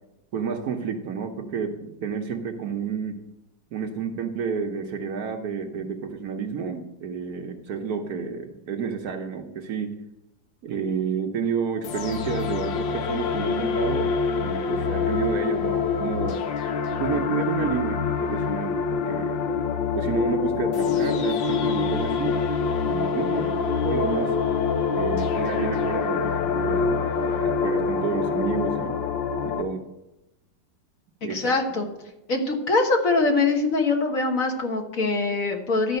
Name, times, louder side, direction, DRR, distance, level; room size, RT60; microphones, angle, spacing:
voice 1, 0.3-3.2 3.7-10.0 10.6-16.4 17.0-19.4 19.9-22.4 22.8-24.4 24.9-29.0 29.4-29.8 31.2-31.5, right 6 dB, 60° right, 5 dB, 1.2 m, -30 dB
sound 1, 11.8-29.6, left 5 dB, 85° left, 1.5 m, -25 dB
voice 2, 31.3-31.9 32.3-36.0, left 3 dB, 50° left, 3 dB, 1.5 m, -23 dB
12.5 x 4.9 x 6.5 m, 0.92 s
omnidirectional pair, 2.0 m